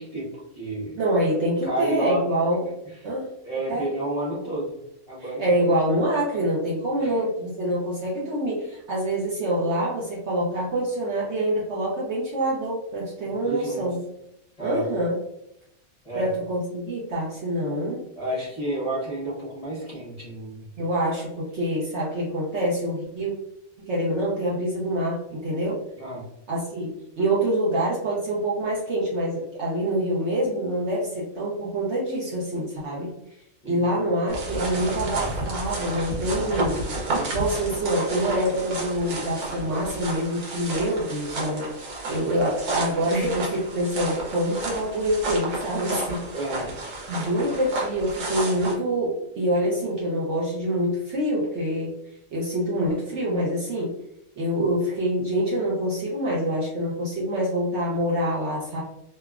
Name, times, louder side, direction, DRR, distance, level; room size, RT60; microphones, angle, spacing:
voice 1, 0.0-1.0 1.6-2.2 2.8-3.0 3.4-4.8 5.1-5.7 7.0-7.1 13.2-13.9 14.6-14.8 16.0-16.3 18.2-20.7 26.0-26.2 33.6-33.9 46.3-46.7, right 1 dB, 30° left, -7 dB, 0.7 m, -31 dB
voice 2, 1.0-2.6 3.0-3.3 3.7-3.9 5.4-14.0 14.6-15.2 16.1-18.0 20.8-23.3 23.8-25.8 26.5-33.1 33.6-36.9 37.3-46.2 47.1-51.9 52.3-53.9 54.4-58.8, right 1 dB, 60° right, -4 dB, 0.8 m, -26 dB
sound 1, 34.3-48.8, right 2 dB, 85° right, 1.3 m, -31 dB
2.9 x 2.2 x 2.3 m, 0.80 s
omnidirectional pair, 1.6 m